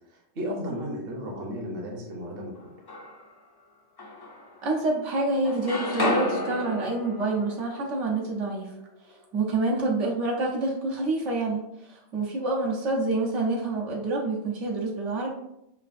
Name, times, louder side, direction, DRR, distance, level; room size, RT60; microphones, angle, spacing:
voice 1, 0.1-2.5, equal, 55° right, 0 dB, 1.0 m, -34 dB
sound 1, 2.5-3.4 4.0-5.0 5.3-9.2, left 2 dB, 40° left, 0.3 m, -33 dB
voice 2, 4.6-8.7 9.1-15.3, right 2 dB, 80° right, -2 dB, 1.1 m, -27 dB
5.6 x 2.4 x 2.5 m, 0.82 s
omnidirectional pair, 1.2 m